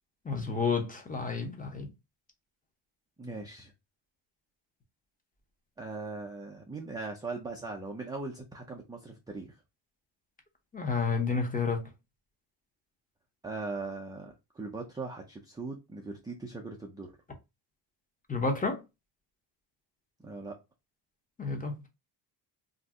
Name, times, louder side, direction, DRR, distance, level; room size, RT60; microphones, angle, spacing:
voice 1, 0.2-1.9 10.7-11.8 18.3-18.8 21.4-21.9, left 4 dB, 20° left, 0.7 m, -30 dB
voice 2, 3.2-3.7 5.8-9.6 13.4-17.1 20.2-20.6, right 3 dB, 10° right, 0.3 m, -40 dB
2.6 x 2.1 x 3.5 m
cardioid pair, 115°, 45 cm